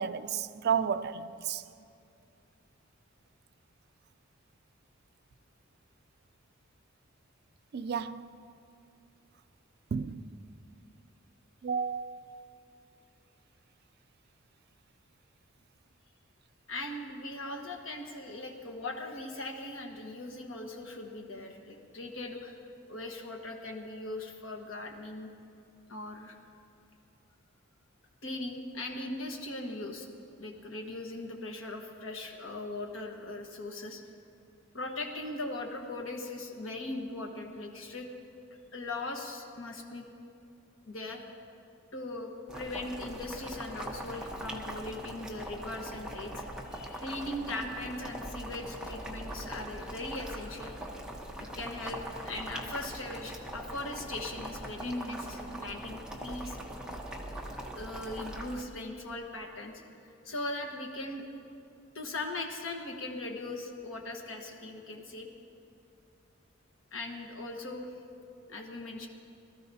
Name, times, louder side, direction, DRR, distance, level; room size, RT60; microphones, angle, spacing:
voice 1, 0.0-1.6 7.7-8.3 9.9-10.2 11.6-12.3, right 7 dB, 50° right, 0.4 m, -32 dB
voice 2, 16.7-22.6 22.9-25.3 25.9-26.4 28.2-30.1 30.4-34.0 34.7-38.1 38.7-40.1 40.9-41.2 41.9-46.4 46.7-50.7 51.6-56.6 57.1-57.2 57.8-61.2 61.9-65.3 66.9-67.9 68.5-69.1, left 2 dB, 80° left, 1.3 m, -39 dB
Boiling, 42.5-58.6, right 1 dB, 5° right, 1.0 m, -41 dB
21.0 x 13.0 x 2.8 m
head